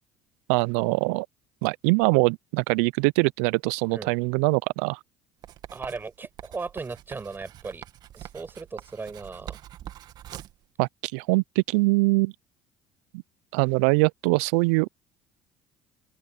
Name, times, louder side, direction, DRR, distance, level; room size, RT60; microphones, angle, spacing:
voice 1, 0.5-1.3 1.6-5.0 10.8-12.3 13.5-14.9, right 28 dB, 70° right, 0.7 m, -23 dB
Writing, 5.4-10.6, right 12 dB, 55° right, 2.3 m, -44 dB
voice 2, 5.7-7.8 8.1-9.6, right 4 dB, 25° right, 6.0 m, -37 dB
open air
hypercardioid pair, 60°, 8 cm